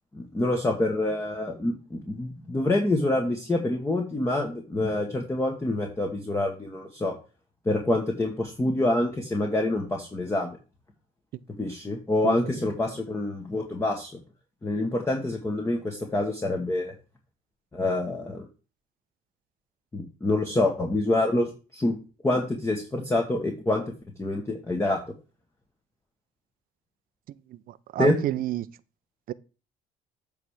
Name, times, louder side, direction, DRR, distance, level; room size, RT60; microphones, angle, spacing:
voice 1, 0.1-7.1 7.6-10.6 11.6-14.1 14.6-16.9 17.7-18.4 19.9-22.0 22.2-23.8 24.2-25.0 28.0-28.1, left 2 dB, 15° left, 1.2 m, -26 dB
voice 2, 12.2-12.6 27.5-28.7 29.3-29.4, right 13 dB, 55° right, 0.5 m, -30 dB
8.4 x 3.4 x 6.4 m
cardioid pair, 110°, 17 cm